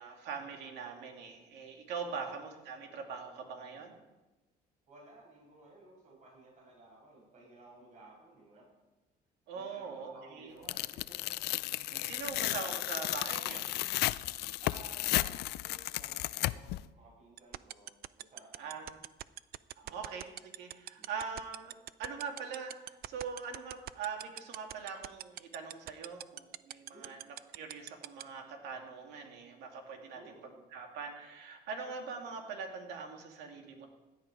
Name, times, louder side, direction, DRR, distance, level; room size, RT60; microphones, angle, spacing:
voice 1, 0.0-4.0 9.5-10.5 11.8-13.7 18.6-19.0 19.8-27.2 27.5-30.3 30.7-33.9, right 5 dB, 85° right, 3 dB, 2.5 m, -42 dB
voice 2, 2.0-2.4 4.9-8.6 9.5-11.1 12.1-12.4 14.6-18.7 19.8-19.9 21.0-21.1 26.9-27.1 30.1-30.6, right 2 dB, 45° right, -2 dB, 6.2 m, -56 dB
Tearing, 10.7-16.8, left 17 dB, 75° left, 0.4 m, -34 dB
sound 1, 17.4-28.2, right 14 dB, 65° right, 0.5 m, -41 dB
16.5 x 10.5 x 4.8 m, 1.1 s
cardioid pair, 110°, 17 cm